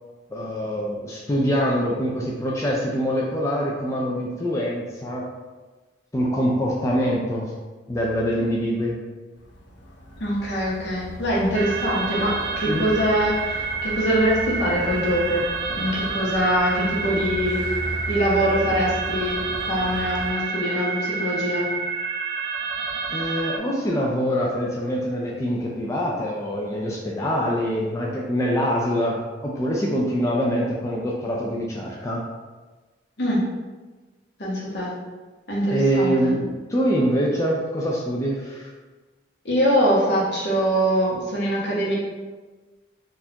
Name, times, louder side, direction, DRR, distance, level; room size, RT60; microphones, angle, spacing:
voice 1, 0.3-5.3 6.1-7.5 7.9-9.0 12.6-12.9 23.1-32.3 35.7-38.7, equal, 15° left, -3 dB, 0.3 m, -24 dB
sound 1, 9.3-20.3, left 1 dB, 85° left, 0.6 m, -36 dB
voice 2, 10.2-17.6 18.1-21.7 33.2-33.4 34.4-34.9 35.5-36.3 39.4-42.0, equal, 70° left, -5 dB, 1.0 m, -23 dB
sound 2, 11.5-23.6, right 5 dB, 60° right, 0.4 m, -29 dB
4.0 x 2.5 x 2.8 m, 1.3 s
head